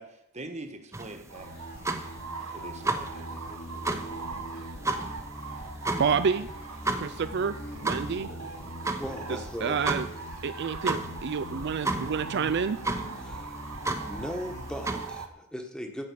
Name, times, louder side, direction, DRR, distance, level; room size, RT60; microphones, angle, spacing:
voice 1, 0.0-1.6 2.5-3.4, right 2 dB, 30° right, 6 dB, 1.4 m, -43 dB
sound 1, 0.9-15.3, right 2 dB, 15° right, 0.9 m, -34 dB
sound 2, 1.3-15.0, equal, 55° left, 3.6 m, -43 dB
sound 3, 1.3-15.3, right 4 dB, 80° right, 1.2 m, -42 dB
voice 2, 6.0-6.5 7.0-7.6 7.8-8.3 9.6-10.1 10.4-12.8, right 6 dB, 50° right, 12 dB, 0.4 m, -28 dB
voice 3, 9.0-9.8 13.2-13.6 14.0-16.1, equal, 5° left, 4 dB, 1.3 m, -38 dB
14.5 x 5.2 x 8.5 m, 0.80 s
head